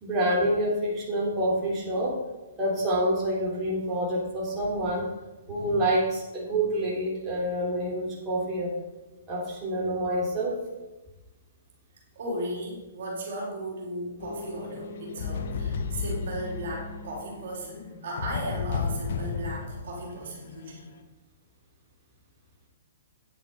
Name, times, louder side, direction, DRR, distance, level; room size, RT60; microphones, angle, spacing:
voice 1, 0.0-2.2 2.6-5.1 5.5-8.7 9.3-10.5, right 1 dB, 20° right, -5 dB, 3.5 m, -27 dB
voice 2, 5.5-5.8 12.2-20.9, right 1 dB, 60° right, -2 dB, 3.5 m, -36 dB
sound 1, 14.2-20.9, left 5 dB, 60° left, 1.0 m, -34 dB
9.3 x 7.3 x 5.5 m, 1.1 s
hypercardioid pair, 125°, 0 cm